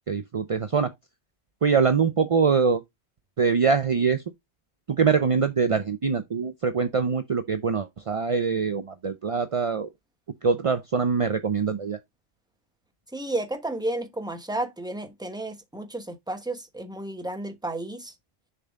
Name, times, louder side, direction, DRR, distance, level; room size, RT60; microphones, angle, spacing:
voice 1, 0.1-0.9 1.6-2.8 3.4-4.2 4.9-9.9 10.4-12.0, right 5 dB, 45° right, 0.4 m, -23 dB
voice 2, 13.1-18.1, right 2 dB, 5° right, 0.9 m, -32 dB
6.8 x 4.1 x 3.5 m
omnidirectional pair, 1.3 m